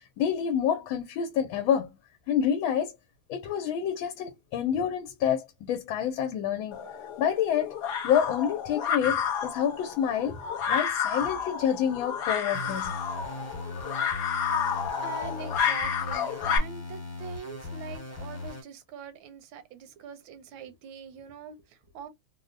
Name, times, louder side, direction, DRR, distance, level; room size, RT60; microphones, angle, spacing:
voice 1, 0.0-2.0 2.3-2.9 3.3-6.8 7.2-7.8 8.0-10.4 10.7-12.9, left 8 dB, 85° left, 1.4 m, -28 dB
sound 1, 6.7-16.6, left 7 dB, 60° left, 1.3 m, -30 dB
sound 2, 12.5-18.6, left 2 dB, 15° left, 0.7 m, -39 dB
voice 2, 14.9-22.1, right 6 dB, 80° right, 1.5 m, -44 dB
3.8 x 2.0 x 2.5 m
omnidirectional pair, 2.2 m